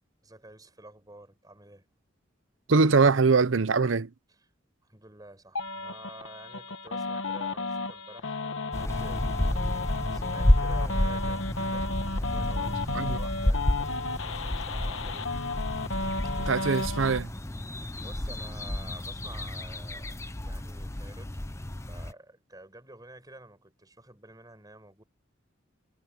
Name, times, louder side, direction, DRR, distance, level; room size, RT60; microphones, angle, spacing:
voice 1, 0.2-1.9 4.8-15.5 17.9-25.0, right 2 dB, 20° right, 6.5 m, -51 dB
voice 2, 2.7-4.1 12.9-13.2 16.4-17.3, right 4 dB, 70° right, 0.7 m, -23 dB
sound 1, 5.6-17.2, left 3 dB, 80° left, 1.2 m, -33 dB
sound 2, 8.7-22.1, left 1 dB, 15° left, 0.7 m, -30 dB
head